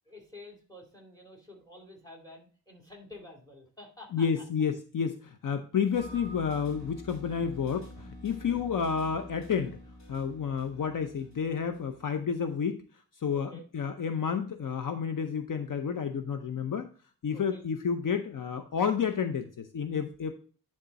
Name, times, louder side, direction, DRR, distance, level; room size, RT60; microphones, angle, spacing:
voice 1, 0.1-4.3 13.3-13.6 17.3-17.6, left 1 dB, 10° left, 0 dB, 2.4 m, -50 dB
voice 2, 4.1-9.8 10.1-12.8 13.2-16.9 17.2-20.3, left 6 dB, 60° left, 7 dB, 0.6 m, -30 dB
sound 1, 5.9-12.5, equal, 45° left, 3.3 m, -48 dB
10.5 x 3.7 x 4.0 m, 0.41 s
wide cardioid pair, 130°, 36 cm